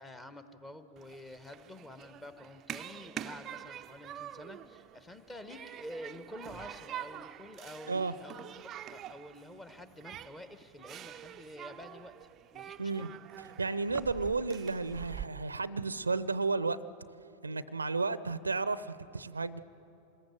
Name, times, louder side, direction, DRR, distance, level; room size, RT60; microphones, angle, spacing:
voice 1, 0.0-8.5 8.7-12.3 12.5-13.1, left 1 dB, 10° left, 10 dB, 1.3 m, -48 dB
Human group actions, 1.0-15.3, right 10 dB, 30° right, 0.5 m, -46 dB
voice 2, 13.6-16.8 17.4-19.6, right 3 dB, 80° right, 17 dB, 0.6 m, -32 dB
26.0 x 21.0 x 7.7 m, 2.9 s
figure-of-eight pair, 90°, 0 cm